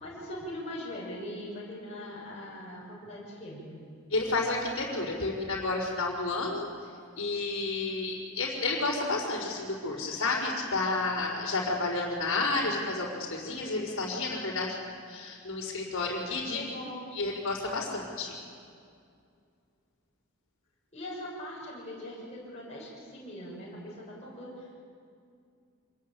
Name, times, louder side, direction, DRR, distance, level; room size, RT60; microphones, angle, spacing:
voice 1, 0.0-3.8 16.2-17.1 20.9-24.7, left 1 dB, 30° left, -6 dB, 6.9 m, -41 dB
voice 2, 4.1-6.7 7.2-16.6 17.1-18.3, left 3 dB, 65° left, -8 dB, 5.0 m, -31 dB
26.5 x 20.5 x 8.5 m, 2.4 s
head